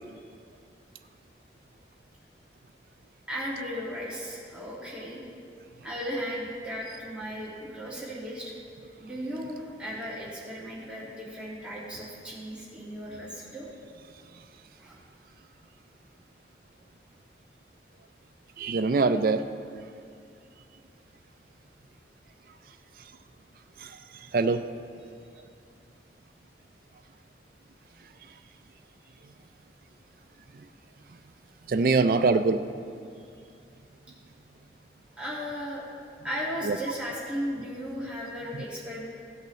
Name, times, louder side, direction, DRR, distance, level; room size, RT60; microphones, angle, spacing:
voice 1, 3.3-5.2 5.8-8.5 9.0-13.7 14.8-15.0 35.2-35.8 36.2-39.1, equal, 5° right, -7 dB, 1.9 m, -36 dB
voice 2, 18.6-19.4 23.8-23.9 24.3-24.6 31.7-32.6 36.6-36.8, right 4 dB, 50° right, 10 dB, 0.4 m, -23 dB
16.5 x 7.9 x 3.1 m, 2.4 s
head